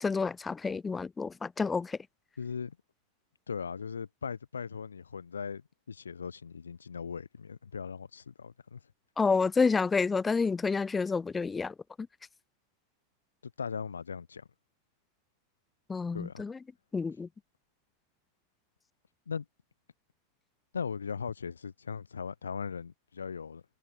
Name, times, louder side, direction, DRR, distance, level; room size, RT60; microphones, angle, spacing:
voice 1, 0.0-2.0 9.2-11.7 15.9-16.6 16.9-17.3, left 4 dB, 15° left, 0.5 m, -29 dB
voice 2, 2.4-2.8 3.5-5.6 5.9-8.8 13.6-14.5 16.1-16.5 19.3-19.5 20.7-23.6, left 6 dB, 70° left, 0.6 m, -38 dB
figure-of-eight pair, 90°, 0 cm